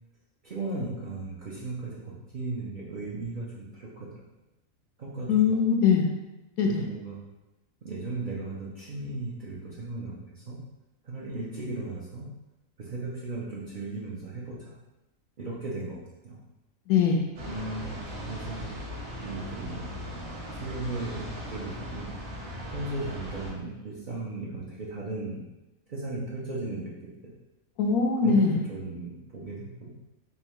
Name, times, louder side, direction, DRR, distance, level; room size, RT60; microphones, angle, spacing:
voice 1, 0.4-4.1 5.0-5.6 6.7-7.2 7.8-10.6 11.0-12.3 12.8-14.8 15.4-16.4 17.5-18.7 19.2-20.0 20.5-22.1 22.7-25.4 25.9-27.3 28.2-29.9, right 2 dB, 50° right, -6 dB, 0.6 m, -36 dB
voice 2, 5.3-6.1 6.6-6.9 16.9-17.3 27.8-28.6, left 5 dB, 85° left, 2 dB, 1.1 m, -22 dB
sound 1, 17.4-23.5, equal, 80° right, 1.5 m, -39 dB
5.4 x 2.2 x 3.0 m, 0.99 s
omnidirectional pair, 1.5 m